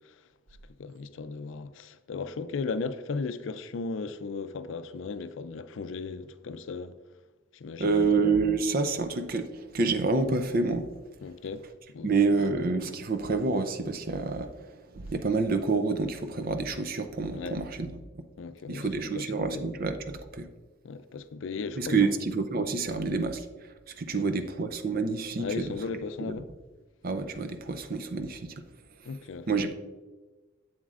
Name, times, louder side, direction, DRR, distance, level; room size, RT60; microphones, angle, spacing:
voice 1, 0.8-7.0 7.5-8.1 11.2-11.6 11.9-12.1 12.4-12.5 17.3-17.6 18.4-19.6 20.8-22.1 22.9-23.1 24.2-24.3 25.4-26.5 29.0-29.7, left 4 dB, 70° left, 0.4 m, -36 dB
voice 2, 7.8-10.9 12.0-18.0 18.7-20.5 21.8-25.8 26.2-26.3 27.0-28.6 29.5-29.7, right 4 dB, 50° right, 0.5 m, -28 dB
7.9 x 7.3 x 2.5 m
head